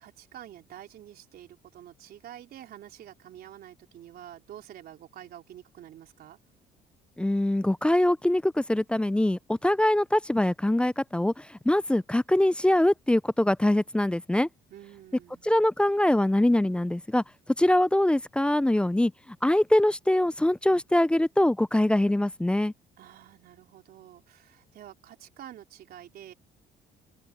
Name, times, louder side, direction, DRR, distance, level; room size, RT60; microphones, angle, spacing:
voice 1, 0.0-6.4 14.7-15.5 23.0-26.3, right 11 dB, 65° right, 3.7 m, -48 dB
voice 2, 7.2-14.5 15.4-17.2 17.6-19.1 19.4-22.7, left 1 dB, 5° left, 0.4 m, -23 dB
open air
cardioid pair, 110°, 17 cm